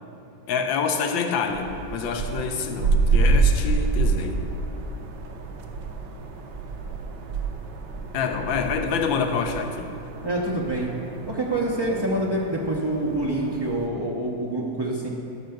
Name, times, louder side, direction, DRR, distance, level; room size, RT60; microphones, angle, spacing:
voice 1, 0.5-4.4 8.1-9.9, left 5 dB, 80° left, 5 dB, 1.6 m, -27 dB
sound 1, 1.5-13.9, right 4 dB, 70° right, 1.5 m, -27 dB
voice 2, 10.2-10.9 11.3-15.1, right 1 dB, 35° right, -4 dB, 0.4 m, -26 dB
13.0 x 5.8 x 6.5 m, 2.6 s
omnidirectional pair, 2.1 m